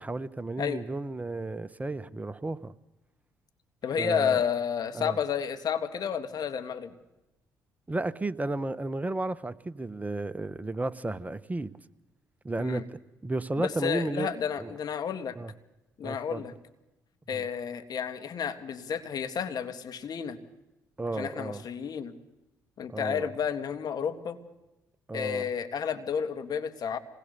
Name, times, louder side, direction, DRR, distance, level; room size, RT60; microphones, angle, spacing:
voice 1, 0.0-2.7 4.0-4.4 4.9-5.2 7.9-11.7 12.4-12.8 13.2-14.7 15.3-15.5 16.0-16.4 17.3-17.4 21.0-21.6 22.9-23.3 25.1-25.5, right 2 dB, 20° right, 14 dB, 1.2 m, -33 dB
voice 2, 3.8-6.9 12.6-12.9 13.6-15.4 16.0-16.5 17.3-20.4 21.1-22.1 22.8-24.4 25.1-27.0, left 7 dB, 60° left, 8 dB, 2.1 m, -31 dB
26.5 x 20.0 x 7.0 m, 1.0 s
hypercardioid pair, 50°, 8 cm